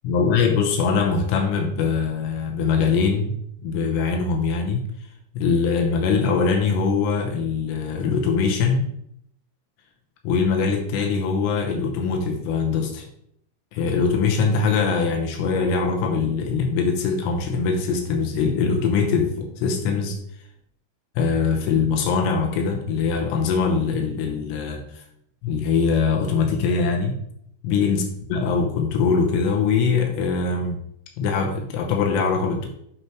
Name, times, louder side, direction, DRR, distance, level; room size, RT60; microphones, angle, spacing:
voice 1, 0.0-4.8 5.3-8.9 10.2-13.0 13.7-20.2 21.2-25.0 25.4-27.2 27.6-28.0 28.3-30.8 31.2-32.7, left 5 dB, 90° left, 2 dB, 3.0 m, -22 dB
8.3 x 3.2 x 4.6 m, 0.72 s
omnidirectional pair, 4.8 m